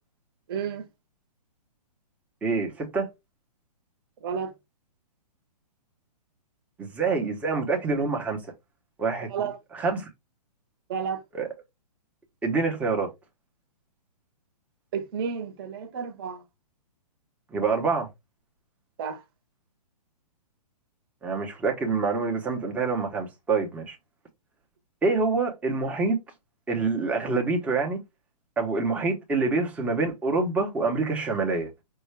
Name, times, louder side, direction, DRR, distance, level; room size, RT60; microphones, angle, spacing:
voice 1, 0.5-0.8 4.2-4.5 9.3-9.6 10.9-11.2 14.9-16.4 19.0-19.2, right 6 dB, 35° right, 0.9 m, -31 dB
voice 2, 2.4-3.1 6.8-8.4 9.0-9.3 9.7-10.1 11.3-11.5 12.4-13.1 17.5-18.1 21.2-24.0 25.0-26.2 26.7-28.0 28.6-31.7, right 4 dB, 5° right, 0.7 m, -26 dB
5.4 x 2.2 x 3.2 m
hypercardioid pair, 155°, 21 cm